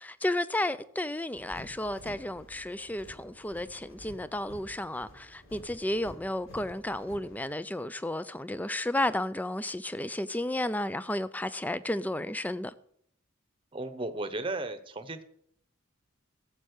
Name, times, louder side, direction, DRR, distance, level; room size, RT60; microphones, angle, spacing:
voice 1, 0.0-12.7, left 1 dB, 10° left, 0.4 m, -32 dB
sound 1, 1.3-7.5, equal, 70° left, 4.2 m, -51 dB
voice 2, 13.7-15.2, right 2 dB, 25° right, 0.9 m, -35 dB
15.0 x 7.4 x 6.5 m
head